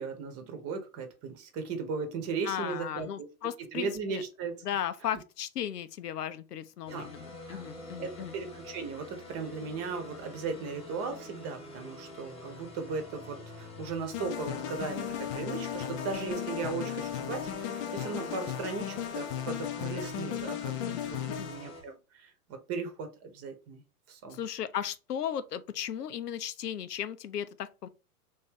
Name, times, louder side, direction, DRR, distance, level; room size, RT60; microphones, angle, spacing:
voice 1, 0.0-3.3 3.7-4.6 6.9-7.1 7.5-7.7 8.0-22.3 22.7-23.8 24.1-24.4, right 4 dB, 30° right, 1.0 m, -37 dB
voice 2, 2.4-4.2 4.6-8.3 20.8-21.5 24.3-27.9, left 10 dB, 85° left, 0.6 m, -36 dB
sound 1, 6.9-21.8, left 1 dB, 10° left, 1.1 m, -47 dB
sound 2, 14.1-21.8, left 9 dB, 30° left, 0.5 m, -36 dB
3.1 x 2.6 x 3.6 m
hypercardioid pair, 110°, 46 cm